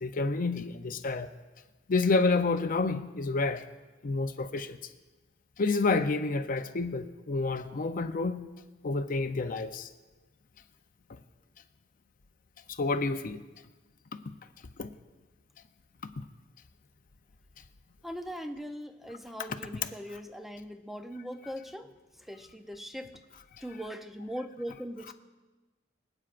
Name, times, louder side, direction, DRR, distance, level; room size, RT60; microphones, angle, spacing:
voice 1, 0.0-1.3 1.9-3.7 4.0-4.8 5.6-8.5 8.8-9.9 11.1-11.2 12.7-13.4 14.1-14.2 14.8-14.9, left 3 dB, 45° left, 8 dB, 0.6 m, -29 dB
voice 2, 18.0-23.1 23.6-25.1, equal, ahead, 7 dB, 0.5 m, -40 dB
25.0 x 8.8 x 2.5 m, 1.2 s
head